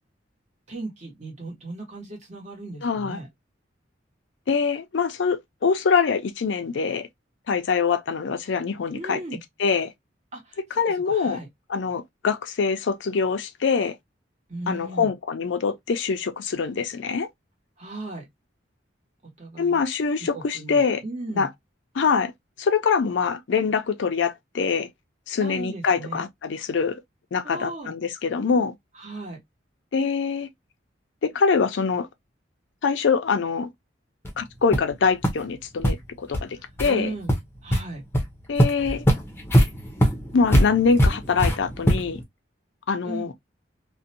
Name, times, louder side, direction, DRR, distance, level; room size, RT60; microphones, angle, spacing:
voice 1, 0.7-3.3 8.9-9.4 10.3-10.6 11.1-11.5 14.5-15.1 17.8-18.3 19.4-19.8 20.3-21.5 25.4-26.2 27.4-27.9 29.0-29.4 36.8-37.3 37.6-38.0 43.0-43.3, right 2 dB, 40° right, 1.1 m, -36 dB
voice 2, 2.8-3.2 4.5-7.1 7.5-9.2 9.6-9.9 10.7-11.4 11.7-13.9 14.7-17.3 19.6-21.0 21.3-21.5 21.9-22.3 22.6-24.9 25.3-27.0 27.3-28.7 29.9-30.5 31.2-32.1 32.8-33.7 34.4-37.1 38.5-39.1 40.3-42.2 42.9-43.3, left 5 dB, 75° left, 0.5 m, -24 dB
sound 1, 34.2-34.3 34.7-34.9 35.2-35.3 35.8-35.9 36.3-36.4 36.8-36.9 37.3-37.8 38.1-38.2 38.6-42.2, equal, 15° left, 0.6 m, -21 dB
2.5 x 2.1 x 2.6 m
head